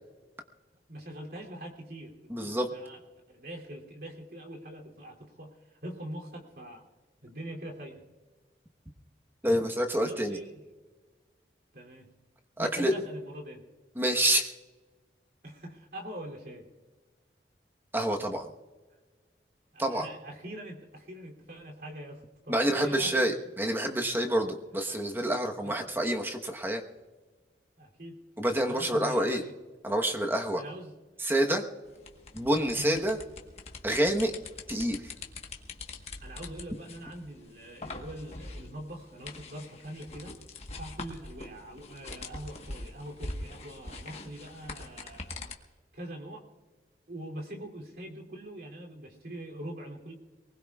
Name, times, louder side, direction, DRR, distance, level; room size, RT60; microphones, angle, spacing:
voice 1, 0.9-3.0 3.3-6.8 7.2-8.0 10.0-10.6 11.7-12.1 12.6-13.6 15.4-16.7 19.7-23.1 25.6-25.8 27.8-29.5 30.6-30.9 32.8-33.0 36.0-40.4 40.8-45.4 45.9-46.4 47.1-50.1, right 1 dB, 60° right, -1 dB, 3.0 m, -43 dB
voice 2, 2.3-2.7 9.4-10.4 12.6-12.9 14.0-14.5 17.9-18.5 19.8-20.1 22.5-26.8 28.4-29.4 29.8-30.6 31.2-31.6 32.3-33.2 33.8-34.3 34.7-35.1, right 1 dB, 10° right, 3 dB, 1.1 m, -27 dB
sound 1, 31.9-45.5, left 2 dB, 35° left, 1.3 m, -43 dB
23.0 x 20.0 x 2.4 m, 1.3 s
head